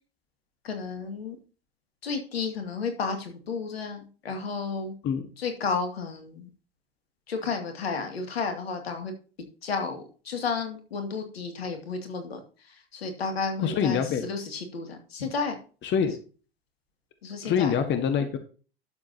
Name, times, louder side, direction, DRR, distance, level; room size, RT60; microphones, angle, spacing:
voice 1, 0.6-1.4 2.0-4.9 5.4-6.5 7.3-9.1 9.6-15.6 17.2-17.7, left 4 dB, 80° left, 5 dB, 2.4 m, -32 dB
voice 2, 13.6-14.2 15.8-16.1 17.4-18.4, left 7 dB, 40° left, 8 dB, 1.6 m, -25 dB
12.0 x 7.6 x 2.8 m, 0.37 s
figure-of-eight pair, 80°, 30 cm